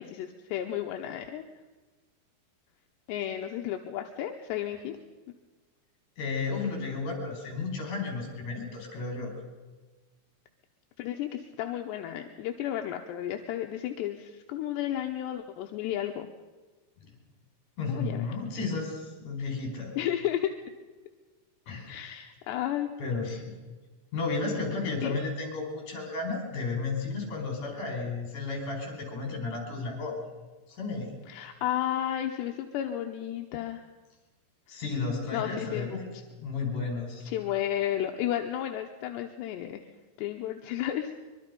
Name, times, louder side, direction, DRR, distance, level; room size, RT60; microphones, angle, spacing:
voice 1, 0.0-1.4 3.1-5.0 11.0-16.3 17.9-18.2 20.0-20.6 21.9-22.9 23.3-23.4 25.0-25.1 31.3-33.8 35.3-35.9 37.3-39.8 40.2-41.1, left 11 dB, 80° left, 4 dB, 3.1 m, -32 dB
voice 2, 6.2-9.3 17.8-19.9 21.7-21.9 23.0-23.5 24.1-30.2 30.7-31.2 34.7-36.0 36.4-37.3, left 4 dB, 45° left, 1 dB, 6.3 m, -33 dB
24.0 x 23.5 x 5.4 m, 1.3 s
omnidirectional pair, 5.0 m